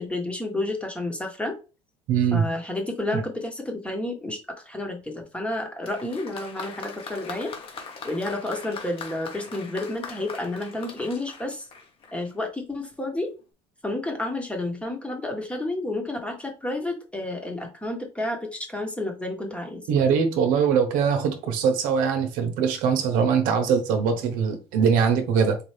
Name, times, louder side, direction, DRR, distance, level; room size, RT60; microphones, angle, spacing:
voice 1, 0.0-1.6 2.3-4.4 4.6-7.5 8.0-11.6 12.1-13.4 13.8-19.8, left 2 dB, 10° left, 1.2 m, -30 dB
voice 2, 2.1-2.5 19.9-25.6, right 6 dB, 75° right, 0.9 m, -22 dB
Applause, 5.8-12.3 13.2-13.3, left 5 dB, 40° left, 1.1 m, -41 dB
4.2 x 2.7 x 3.3 m
cardioid pair, 120°, 14 cm